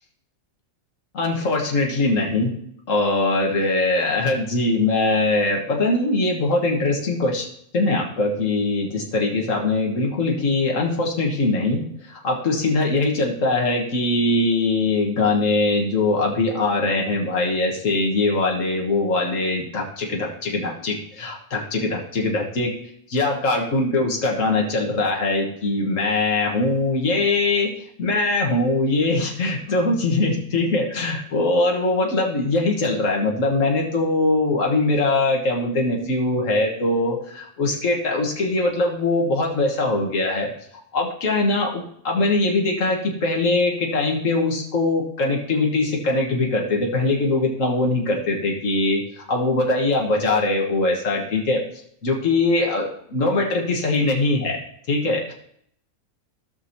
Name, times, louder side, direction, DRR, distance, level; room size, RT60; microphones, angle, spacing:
voice 1, 1.1-2.6 2.9-7.5 7.7-22.8 23.1-27.7 28.0-40.5 40.9-51.6 52.0-54.6 54.9-55.3, left 2 dB, 70° left, -1 dB, 1.9 m, -22 dB
16.5 x 6.2 x 2.8 m, 0.69 s
omnidirectional pair, 1.4 m